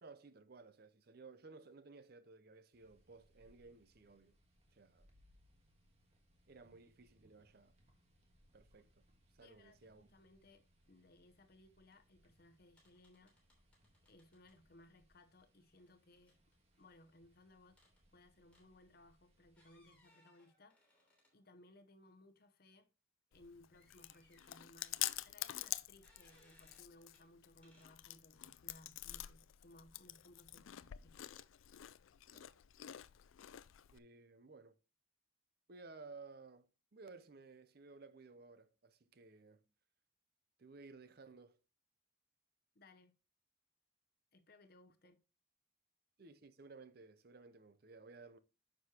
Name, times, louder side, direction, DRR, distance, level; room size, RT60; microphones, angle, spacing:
voice 1, 0.0-4.4 4.7-5.1 6.5-7.8 8.5-9.0 9.3-10.1 32.3-32.5 33.9-34.8 35.7-39.7 40.6-41.6 46.2-48.4, right 4 dB, 50° right, 0.6 m, -57 dB
sound 1, 2.7-20.0, equal, 30° right, 1.6 m, -73 dB
voice 2, 9.4-13.3 14.1-16.4 16.8-17.8 18.1-21.1 21.3-22.9 23.3-31.3 42.7-43.1 44.3-45.2, left 2 dB, 50° left, 0.8 m, -64 dB
sound 2, 12.1-12.2 12.4-12.5 12.8-14.6 15.8-17.2 17.8-18.0 18.5-18.7 19.5-21.6 22.1-22.2 23.7-25.2 26.0-26.9 27.1-27.2 27.6-27.9, left 1 dB, 5° left, 3.1 m, -71 dB
Chewing mastication, 23.3-34.0, left 14 dB, 85° left, 0.4 m, -47 dB
9.5 x 6.2 x 2.9 m
head